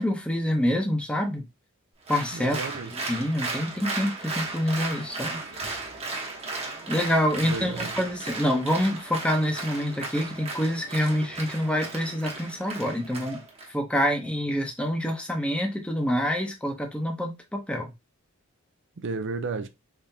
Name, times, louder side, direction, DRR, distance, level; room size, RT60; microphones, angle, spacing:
voice 1, 0.0-1.4 2.1-2.6 3.1-5.4 6.9-13.4 13.7-17.9, equal, 5° left, 0.8 m, -26 dB
Applause, 2.1-13.7, right 3 dB, 30° right, 1.1 m, -35 dB
voice 2, 2.3-3.0 7.5-7.9 19.0-19.7, right 4 dB, 60° right, 0.5 m, -32 dB
3.7 x 3.3 x 2.7 m
head